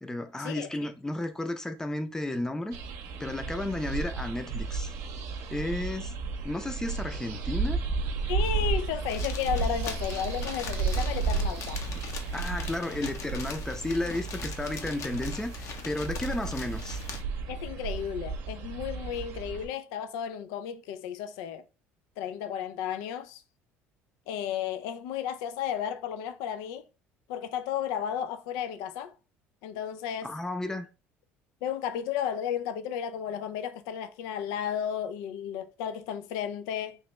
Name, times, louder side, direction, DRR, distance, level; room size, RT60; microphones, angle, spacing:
voice 1, 0.0-2.7 3.2-5.0 5.5-6.1 6.4-7.8 12.3-17.0 30.2-30.9, left 1 dB, 10° left, 0.5 m, -33 dB
sound 1, 2.7-19.7, right 4 dB, 70° right, 0.7 m, -33 dB
voice 2, 8.3-11.8 17.5-21.6 22.2-23.4 24.3-26.9 27.3-29.1 29.6-30.3 31.6-37.0, left 9 dB, 75° left, 0.3 m, -33 dB
sound 2, 9.1-17.2, left 5 dB, 55° left, 0.7 m, -41 dB
3.1 x 2.8 x 3.2 m
hypercardioid pair, 75°, 6 cm